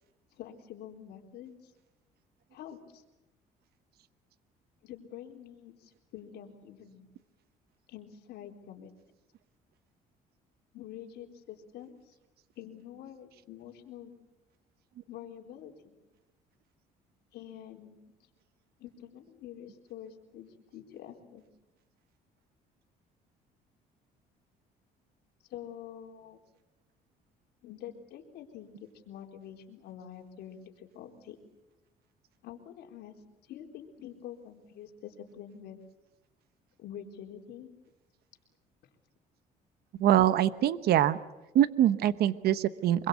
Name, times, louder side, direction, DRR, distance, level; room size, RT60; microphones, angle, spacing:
voice 1, 0.4-1.7 2.5-3.0 4.8-7.1 7.9-8.9 10.7-12.1 12.6-14.2 15.1-15.9 17.3-18.1 18.8-21.4 25.5-26.4 27.6-31.4 32.4-33.2 33.5-35.8 36.8-37.7, left 10 dB, 75° left, 2 dB, 4.1 m, -47 dB
voice 2, 40.0-41.2 41.5-43.1, right 11 dB, 70° right, 14 dB, 1.1 m, -24 dB
25.5 x 23.0 x 8.3 m, 0.99 s
cardioid pair, 110°, 17 cm